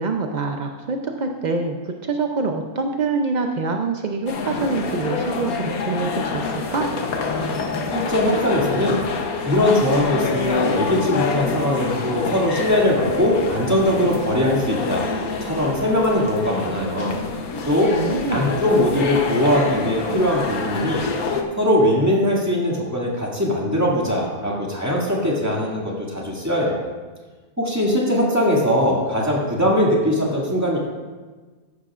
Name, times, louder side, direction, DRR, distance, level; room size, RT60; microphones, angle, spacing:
voice 1, 0.0-6.9 18.0-18.5, right 3 dB, 60° right, 3 dB, 0.4 m, -25 dB
sound 1, 4.3-21.4, left 4 dB, 75° left, 1.4 m, -27 dB
voice 2, 7.9-9.0 9.4-15.0 15.4-17.2 17.6-17.9 18.3-21.1 21.5-26.8 27.6-30.8, left 1 dB, 10° right, -4 dB, 2.2 m, -20 dB
14.0 x 11.0 x 2.5 m, 1.3 s
omnidirectional pair, 1.6 m